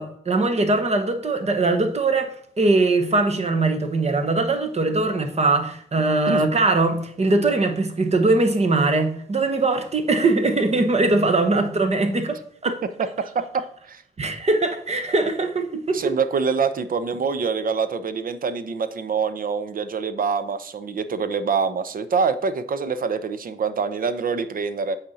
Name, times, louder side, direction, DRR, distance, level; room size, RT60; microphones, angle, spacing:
voice 1, 0.0-12.4 12.6-12.7 14.2-16.0, right 2 dB, 40° right, 6 dB, 1.2 m, -21 dB
voice 2, 12.8-14.0 15.9-25.0, right 5 dB, 55° right, 12 dB, 0.7 m, -25 dB
8.5 x 4.3 x 4.1 m, 0.65 s
cardioid pair, 65°, 17 cm